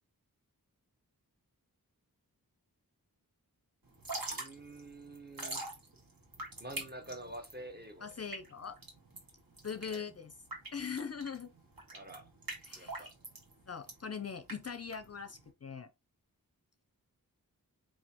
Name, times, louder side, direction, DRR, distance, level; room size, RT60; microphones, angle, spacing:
Drip / Trickle dribble, 3.9-15.5, right 2 dB, 65° right, 1.6 m, -44 dB
voice 1, 4.3-5.7 6.6-8.1 9.8-10.0 11.9-12.3 12.7-13.1, right 1 dB, 25° right, 1.1 m, -47 dB
voice 2, 8.0-8.8 9.6-10.3 10.7-11.5 12.7-13.1 13.7-15.9, left 6 dB, 45° left, 0.5 m, -41 dB
4.9 x 3.0 x 2.8 m
wide cardioid pair, 50°, 37 cm